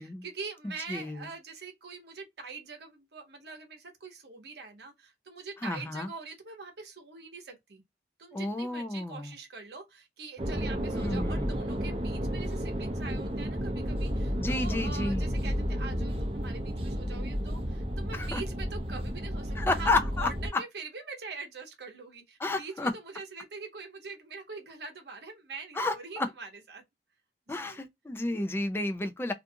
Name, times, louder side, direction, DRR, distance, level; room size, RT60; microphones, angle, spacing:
voice 1, 0.0-7.8 8.2-26.8 27.5-27.9, right 4 dB, 65° right, 0.8 m, -44 dB
voice 2, 0.9-1.3 5.6-6.1 8.3-9.3 10.9-11.6 14.4-15.3 18.1-18.4 19.6-20.3 22.4-22.9 25.8-26.3 27.5-29.3, left 2 dB, 15° left, 0.4 m, -31 dB
sound 1, 10.4-20.5, equal, 35° right, 0.6 m, -32 dB
2.5 x 2.3 x 2.6 m
head